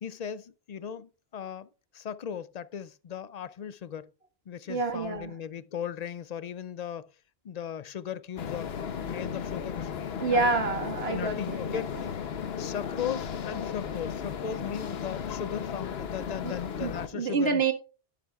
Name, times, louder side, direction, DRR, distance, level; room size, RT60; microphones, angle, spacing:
voice 1, 0.0-4.1 4.5-7.1 7.4-10.5 11.0-11.9 12.6-17.7, left 8 dB, 50° left, 0.5 m, -37 dB
voice 2, 4.7-5.3 10.2-11.8 16.4-17.7, right 4 dB, 80° right, 1.9 m, -28 dB
sound 1, 8.4-17.1, left 7 dB, 80° left, 1.1 m, -35 dB
11.0 x 10.0 x 2.4 m
omnidirectional pair, 1.0 m